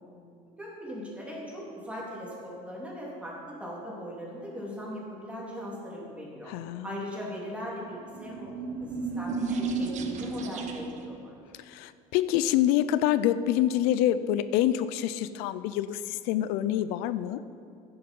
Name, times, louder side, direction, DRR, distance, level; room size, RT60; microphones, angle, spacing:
voice 1, 0.4-6.5 6.8-11.4, equal, 10° right, -5 dB, 3.4 m, -39 dB
voice 2, 6.5-6.9 11.6-17.4, left 12 dB, 85° left, 14 dB, 0.6 m, -26 dB
sound 1, 8.0-11.1, right 4 dB, 50° right, 1.4 m, -32 dB
13.5 x 11.0 x 5.5 m, 2.4 s
cardioid pair, 125°, 16 cm